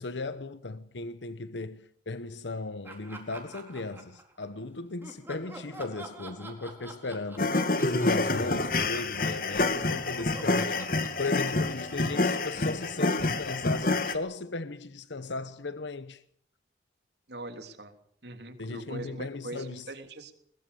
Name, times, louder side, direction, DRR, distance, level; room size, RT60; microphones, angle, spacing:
voice 1, 0.0-7.6 7.9-16.2 18.6-19.9, left 3 dB, 75° left, 1.0 m, -37 dB
Laughter, 2.8-4.6 5.0-9.4 9.7-13.3, right 2 dB, 10° right, 4.3 m, -48 dB
sound 1, 7.4-14.1, left 2 dB, 50° left, 2.0 m, -27 dB
voice 2, 17.3-17.9 18.2-20.3, right 2 dB, 65° right, 3.3 m, -42 dB
22.0 x 21.0 x 6.9 m
head